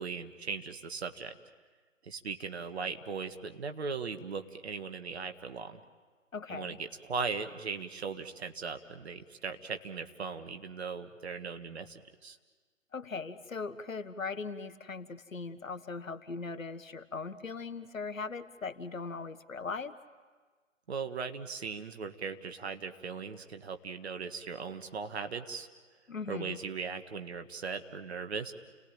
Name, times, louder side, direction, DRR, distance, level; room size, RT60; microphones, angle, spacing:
voice 1, 0.0-1.3 2.0-5.8 6.5-12.4 20.9-25.7 26.3-28.5, right 5 dB, 55° right, 8 dB, 1.7 m, -38 dB
voice 2, 6.3-6.8 12.9-19.9 26.1-26.6, left 4 dB, 80° left, 13 dB, 1.4 m, -39 dB
30.0 x 19.0 x 8.9 m, 1.5 s
figure-of-eight pair, 145°, 39 cm